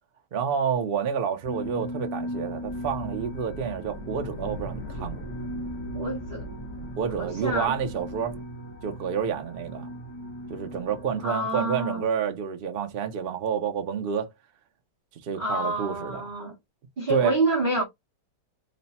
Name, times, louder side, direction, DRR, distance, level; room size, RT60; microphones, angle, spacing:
voice 1, 0.3-5.2 7.0-8.3 8.8-9.9 10.5-14.3 15.2-16.2 17.1-17.4, right 7 dB, 85° right, 0.5 m, -29 dB
sound 1, 1.4-11.2, equal, 35° left, 1.4 m, -38 dB
sound 2, 2.6-8.4, left 1 dB, 50° left, 1.0 m, -40 dB
voice 2, 5.9-6.5 7.2-7.7 11.2-12.0 15.4-16.5 17.0-17.8, right 2 dB, 40° right, 0.8 m, -27 dB
3.2 x 2.1 x 4.0 m
omnidirectional pair, 1.9 m